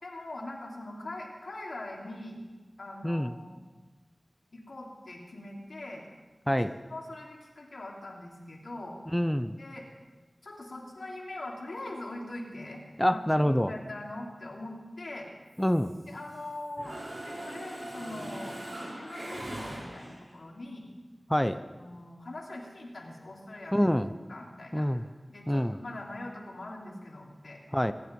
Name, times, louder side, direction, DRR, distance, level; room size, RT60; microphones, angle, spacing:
voice 1, 0.0-2.4 2.8-3.6 4.5-6.1 6.4-6.6 6.9-9.0 9.6-9.9 10.4-15.3 16.1-17.0 17.2-18.6 18.9-20.9 21.7-23.9 24.3-24.9 25.3-27.6, left 2 dB, 85° left, -2 dB, 3.2 m, -42 dB
voice 2, 6.5-6.8 9.1-9.5 13.0-13.7 15.6-15.9 21.3-21.6 23.7-24.1 24.7-25.0 25.5-25.8 27.7-27.9, equal, 5° left, 10 dB, 0.7 m, -26 dB
Mechanisms, 15.5-16.5 16.8-20.3, right 1 dB, 80° right, 5.4 m, -41 dB
24.5 x 9.9 x 5.3 m, 1.3 s
wide cardioid pair, 50°, 0 cm